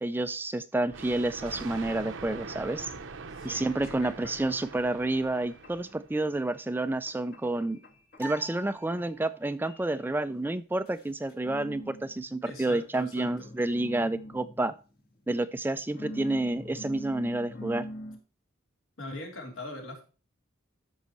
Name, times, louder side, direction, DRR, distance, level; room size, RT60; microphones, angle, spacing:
voice 1, 0.0-2.9 3.4-7.8 8.2-14.7 15.3-17.9, right 2 dB, 10° right, 12 dB, 0.3 m, -29 dB
Thunder, 0.9-6.2, right 4 dB, 70° right, 0.7 m, -43 dB
sound 1, 3.0-3.1 3.5-4.0 4.4-4.9 5.4-5.9 6.2-6.8 7.1-9.4 9.7-10.0 10.9-13.0 13.2-15.4 16.0-18.2, equal, 50° left, 1.6 m, -44 dB
voice 2, 3.3-4.5 12.4-13.5 19.0-20.0, left 1 dB, 75° left, 1 dB, 3.4 m, -42 dB
sound 2, 8.2-9.7, right 1 dB, 10° left, 1.0 m, -44 dB
13.5 x 5.5 x 3.0 m, 0.34 s
head